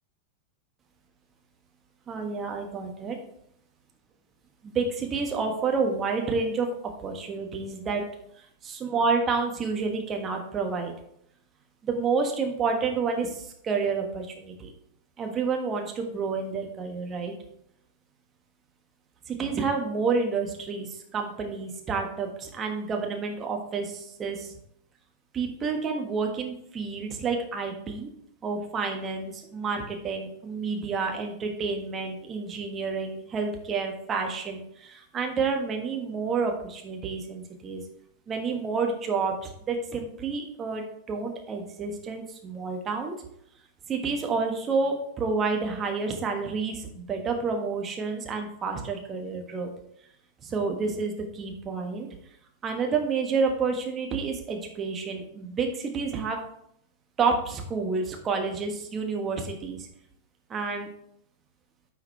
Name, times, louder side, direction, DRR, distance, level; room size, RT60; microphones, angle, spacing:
voice 1, 2.1-3.2 4.6-8.0 8.6-10.9 11.8-14.7 15.2-17.3 19.3-24.5 25.3-28.1 28.4-37.8 38.3-43.1 43.9-49.7 50.4-52.1 52.6-56.4 57.2-59.9 60.5-60.9, right 4 dB, 25° right, 3 dB, 1.5 m, -29 dB
10.0 x 5.7 x 3.4 m, 0.73 s
figure-of-eight pair, 90°, 0 cm